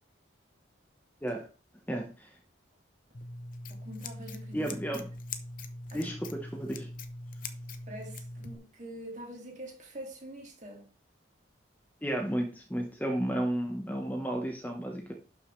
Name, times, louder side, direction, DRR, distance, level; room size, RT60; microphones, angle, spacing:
Scissors, 3.1-8.5, left 2 dB, 45° left, 0.8 m, -42 dB
voice 1, 3.7-4.8 5.9-6.1 7.9-10.9, right 1 dB, 40° right, 2.3 m, -45 dB
voice 2, 4.5-5.1 5.9-6.9 12.0-15.1, right 1 dB, 10° left, 1.0 m, -32 dB
12.0 x 6.4 x 3.2 m
head